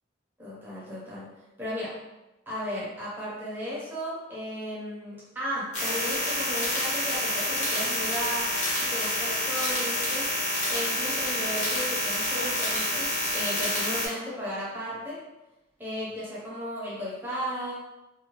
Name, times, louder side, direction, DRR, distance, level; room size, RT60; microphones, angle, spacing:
voice 1, 0.4-2.0 2.5-8.5 8.8-10.3 10.7-15.2 15.8-17.7, equal, 10° right, -8 dB, 0.9 m, -35 dB
sound 1, 5.7-14.1, left 1 dB, 40° left, 0.9 m, -28 dB
2.6 x 2.4 x 3.0 m, 0.99 s
head